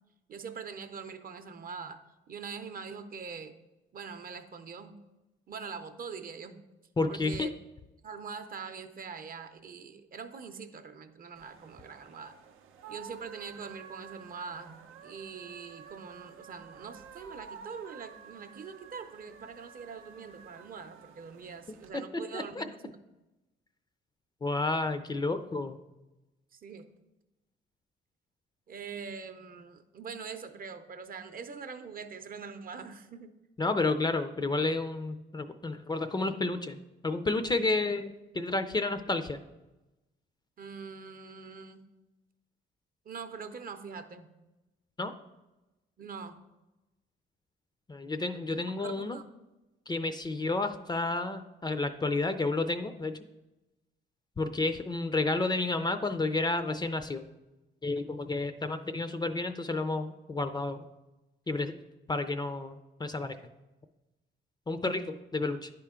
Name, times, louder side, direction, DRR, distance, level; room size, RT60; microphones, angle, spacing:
voice 1, 0.3-2.0 2.3-3.5 3.9-4.9 5.5-6.6 7.1-7.5 8.0-12.3 12.9-22.7 26.5-26.9 28.7-33.3 40.6-41.8 43.1-44.3 46.0-46.4 48.5-49.2, right 5 dB, 45° right, 8 dB, 0.6 m, -43 dB
voice 2, 7.0-7.5 21.9-22.0 22.3-22.6 24.4-25.8 33.6-36.8 37.0-39.4 45.0-45.1 47.9-49.2 49.9-53.1 54.4-57.2 57.8-60.9 61.5-61.7 62.1-63.4 64.7-65.7, left 3 dB, 20° left, 9 dB, 0.4 m, -31 dB
sound 1, 11.4-21.9, right 7 dB, 85° right, 0.5 m, -51 dB
9.9 x 4.5 x 3.6 m, 1.0 s
cardioid pair, 90°, 20 cm